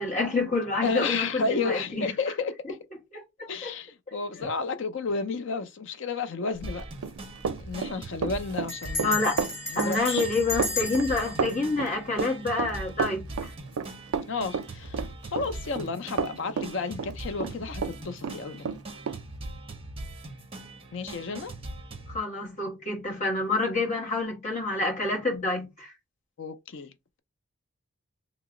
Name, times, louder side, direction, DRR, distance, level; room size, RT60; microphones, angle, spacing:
voice 1, 0.0-2.1 3.1-3.2 3.6-3.7 4.3-4.5 9.0-9.4 9.7-13.5 22.1-25.9, left 3 dB, 30° left, 1.2 m, -28 dB
voice 2, 0.8-2.8 3.5-6.8 7.6-9.2 9.7-10.3 14.3-18.7 20.9-21.5 26.4-26.9, left 4 dB, 55° left, 0.5 m, -32 dB
Bell, 6.6-6.9 7.2-7.3 7.5-7.9 8.7-12.8, left 2 dB, 10° left, 1.3 m, -35 dB
sound 1, 6.6-22.2, right 2 dB, 25° right, 0.6 m, -41 dB
Run, 6.8-18.0 18.2-19.2, right 6 dB, 80° right, 0.4 m, -31 dB
2.9 x 2.0 x 3.6 m
head